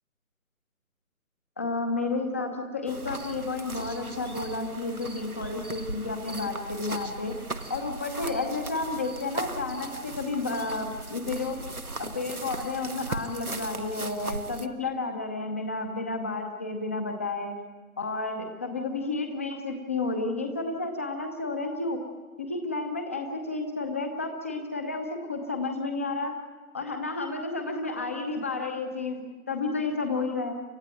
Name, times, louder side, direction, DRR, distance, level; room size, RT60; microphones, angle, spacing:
voice 1, 1.6-7.3 7.7-11.6 12.0-17.5 18.0-22.0 22.4-26.3 26.7-30.5, left 3 dB, 10° left, 5 dB, 0.8 m, -31 dB
sound 1, 2.9-14.7, right 2 dB, 90° right, 1.7 m, -38 dB
28.5 x 14.0 x 9.2 m, 1.3 s
figure-of-eight pair, 150°, 42 cm